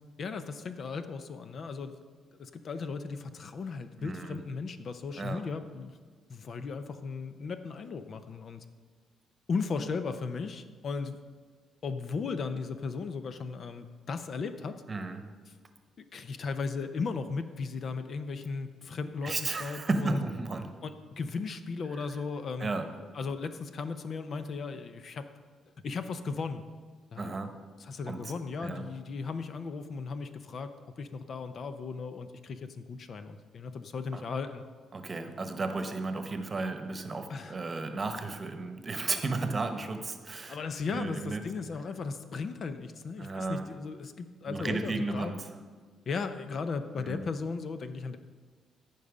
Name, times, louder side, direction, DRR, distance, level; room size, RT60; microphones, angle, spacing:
voice 1, 0.2-2.0 2.4-5.9 6.3-8.6 9.5-11.2 11.8-14.8 16.0-20.2 20.8-22.7 23.1-25.3 25.8-26.7 27.1-27.3 27.8-30.7 31.0-34.6 37.3-37.5 40.5-45.3 46.1-48.2, left 4 dB, 55° left, 10 dB, 0.7 m, -36 dB
voice 2, 4.0-4.4 5.2-5.4 14.9-15.3 19.2-20.7 21.9-22.1 22.6-22.9 27.2-27.6 28.1-28.3 28.6-28.9 34.1-34.3 34.9-40.6 40.9-41.4 43.2-43.7 44.5-45.5 47.0-47.2, right 3 dB, 30° right, 8 dB, 1.0 m, -34 dB
15.0 x 5.5 x 5.0 m, 1.5 s
cardioid pair, 90°, 0 cm